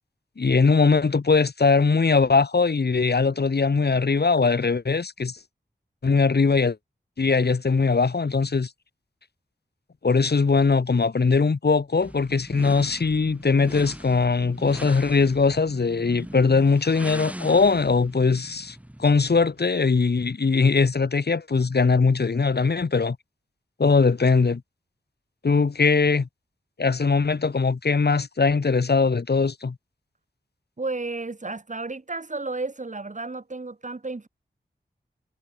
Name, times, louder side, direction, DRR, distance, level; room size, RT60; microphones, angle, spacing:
voice 1, 0.4-5.4 6.0-6.8 7.2-8.7 10.0-23.2 23.8-24.6 25.4-26.3 26.8-29.7, left 4 dB, 65° left, 2.7 m, -21 dB
sound 1, 12.0-19.6, right 1 dB, 5° right, 3.2 m, -40 dB
voice 2, 30.8-34.3, right 3 dB, 40° right, 4.8 m, -32 dB
wide cardioid pair, 100°, 18 cm